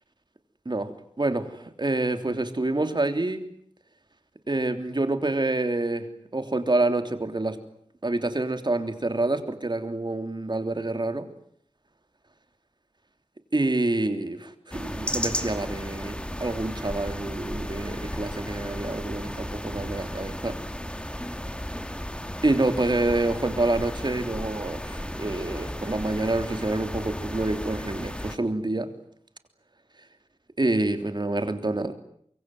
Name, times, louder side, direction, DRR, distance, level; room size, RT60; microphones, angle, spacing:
voice 1, 0.6-3.5 4.5-6.1 6.3-7.6 8.0-11.3 13.5-20.6 22.4-28.9 30.6-31.9, right 2 dB, 45° right, 8 dB, 3.3 m, -27 dB
sound 1, 14.7-28.4, equal, 10° left, 2.4 m, -34 dB
25.0 x 23.0 x 9.4 m, 0.67 s
wide cardioid pair, 55°, 10 cm